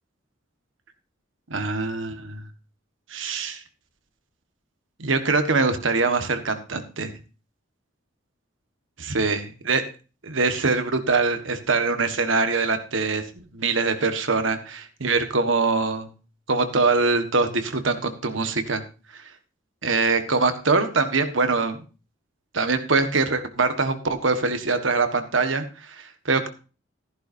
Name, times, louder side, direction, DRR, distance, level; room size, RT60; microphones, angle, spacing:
voice 1, 1.5-2.4 3.1-3.6 5.0-7.1 9.1-9.4 9.7-9.8 10.2-13.2 13.5-16.1 16.5-18.8 19.1-19.2 19.8-21.8 22.5-26.5, right 3 dB, 80° right, 8 dB, 1.5 m, -23 dB
14.0 x 11.5 x 2.7 m, 0.34 s
head